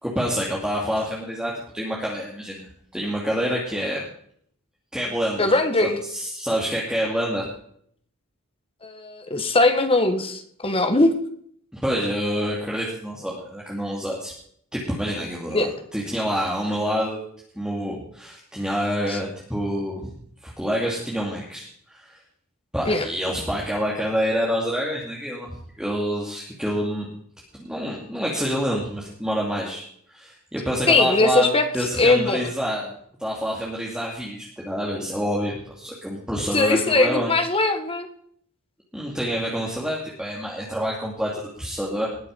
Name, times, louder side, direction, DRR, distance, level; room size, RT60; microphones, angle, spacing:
voice 1, 0.0-2.7 2.9-4.0 4.9-5.5 5.8-7.5 11.7-14.3 14.7-17.2 17.5-20.1 20.4-22.2 22.7-27.1 27.6-31.5 31.7-32.9 33.2-37.3 38.9-42.1, equal, 5° right, -4 dB, 2.7 m, -27 dB
voice 2, 5.4-6.0 8.8-11.1 15.5-15.7 19.1-19.2 22.9-23.1 30.9-31.7 32.0-32.5 36.5-38.1, left 2 dB, 25° left, 7 dB, 1.7 m, -20 dB
20.0 x 7.3 x 5.4 m, 0.64 s
head